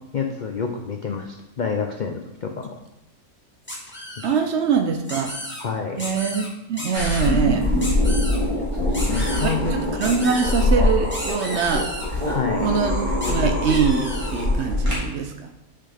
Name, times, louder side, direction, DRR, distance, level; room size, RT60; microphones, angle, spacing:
voice 1, 0.1-2.7 5.6-6.0 9.0-9.8 12.3-12.7, left 5 dB, 80° left, 3 dB, 0.4 m, -28 dB
sound 1, 3.7-4.3 5.1-5.6 6.0-6.5 6.8-7.3 7.8-8.4 8.9-9.5 10.0-10.7 11.1-12.1 13.2-13.3 13.6-14.5, left 1 dB, 10° left, 1.1 m, -33 dB
voice 2, 4.2-5.3 6.0-7.7 9.4-11.9 12.6-15.5, right 6 dB, 65° right, 5 dB, 0.7 m, -23 dB
sound 2, 6.9-14.9, left 1 dB, 20° right, 2.5 m, -23 dB
6.7 x 5.7 x 3.4 m, 0.90 s
omnidirectional pair, 1.5 m